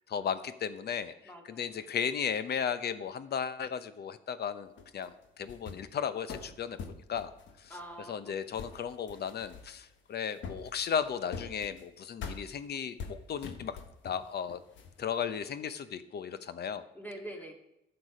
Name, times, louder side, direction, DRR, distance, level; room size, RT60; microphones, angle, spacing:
voice 1, 0.1-1.1 1.4-7.3 7.6-7.8 8.1-13.8 14.0-14.6 15.0-16.8, left 7 dB, 55° left, 13 dB, 0.8 m, -35 dB
voice 2, 1.2-2.0 7.7-8.8 16.9-17.5, right 1 dB, 10° left, 2 dB, 2.2 m, -46 dB
sound 1, 4.8-5.9 6.3-8.2 8.5-10.0 10.2-11.8 12.2-12.4 13.0-14.2 14.5-15.3, left 5 dB, 70° left, 1.4 m, -44 dB
12.0 x 6.9 x 5.0 m, 0.87 s
cardioid pair, 90°, 20 cm